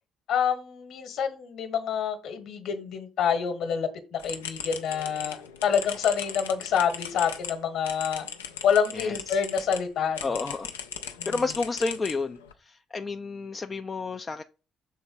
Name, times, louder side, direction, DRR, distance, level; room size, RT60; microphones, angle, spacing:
voice 1, 0.3-8.3 8.6-10.3 11.2-11.3, left 7 dB, 55° left, 1.2 m, -27 dB
sound 1, 4.2-9.8 10.2-12.5, left 7 dB, 80° left, 0.5 m, -38 dB
voice 2, 8.9-9.4 10.2-10.7 11.3-14.4, left 4 dB, 30° left, 0.4 m, -31 dB
6.6 x 3.9 x 5.4 m
figure-of-eight pair, 45°, 0 cm